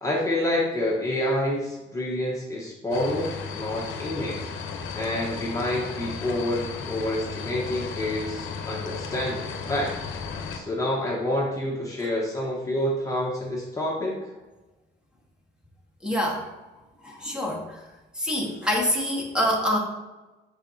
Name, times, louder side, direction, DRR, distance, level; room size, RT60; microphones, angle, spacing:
voice 1, 0.0-4.4 4.9-10.0 10.5-14.2, left 1 dB, 15° left, -4 dB, 1.3 m, -28 dB
sound 1, 2.9-10.6, left 5 dB, 90° left, 0.9 m, -35 dB
voice 2, 16.0-16.4 17.0-17.8 18.1-19.8, left 1 dB, 5° right, -1 dB, 1.6 m, -26 dB
6.7 x 5.8 x 2.8 m, 1.1 s
cardioid pair, 90°, 20 cm